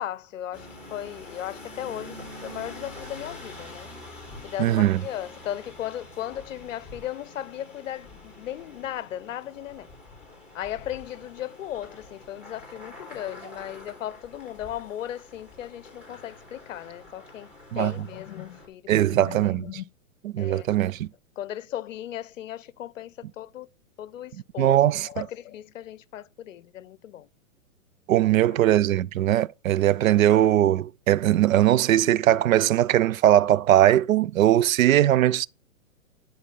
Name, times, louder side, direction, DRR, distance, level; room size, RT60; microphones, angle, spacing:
voice 1, 0.0-3.9 4.4-9.9 10.5-19.8 20.4-20.7 21.4-23.7 24.0-24.8 25.1-27.3 28.2-28.6, left 12 dB, 65° left, 0.7 m, -36 dB
sound 1, 0.5-18.7, left 2 dB, 5° right, 3.6 m, -45 dB
voice 2, 4.6-5.0 17.7-17.9 18.9-19.6 20.3-21.1 24.6-25.2 28.1-35.5, right 12 dB, 70° right, 0.5 m, -20 dB
11.0 x 3.9 x 5.5 m
hypercardioid pair, 130°, 42 cm